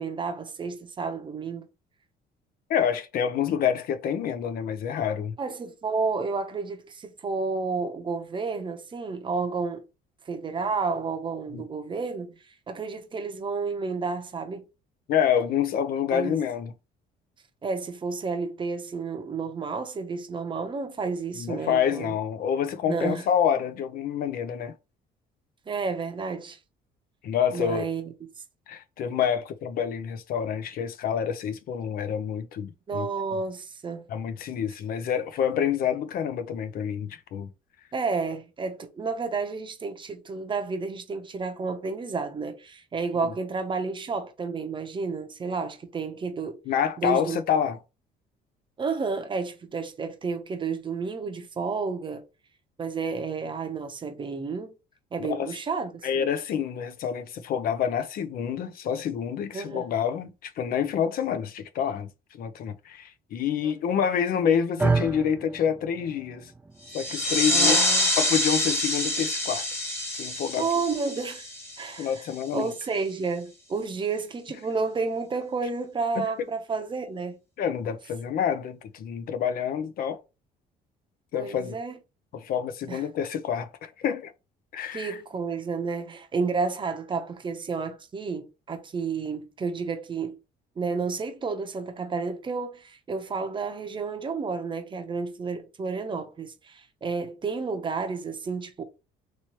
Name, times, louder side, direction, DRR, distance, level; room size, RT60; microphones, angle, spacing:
voice 1, 0.0-1.7 5.4-9.9 10.2-12.4 12.7-14.6 16.1-16.4 17.6-22.1 22.8-23.3 25.7-26.6 27.5-28.1 32.9-34.1 37.9-46.6 47.0-47.4 48.8-52.2 52.8-54.7 55.1-56.3 59.5-59.9 63.6-63.7 67.5-68.1 70.6-71.5 71.8-72.3 72.5-77.4 81.3-82.0 82.9-83.0 84.9-90.4 90.8-98.8, right 4 dB, 30° right, 0.7 m, -31 dB
voice 2, 2.7-5.3 11.5-11.6 15.1-16.7 21.4-24.7 27.2-27.9 28.7-33.1 34.1-37.5 46.7-47.8 55.3-55.5 56.0-66.5 66.9-67.8 68.2-69.6 70.1-70.7 72.0-72.7 76.2-76.3 77.6-80.2 81.3-81.8 82.3-84.3 84.7-85.2, left 8 dB, 60° left, 0.5 m, -27 dB
sound 1, 64.8-73.0, right 3 dB, 10° right, 0.3 m, -34 dB
sound 2, 66.9-72.2, left 1 dB, 15° left, 1.3 m, -26 dB
3.1 x 3.0 x 2.9 m
cardioid pair, 110°, 17 cm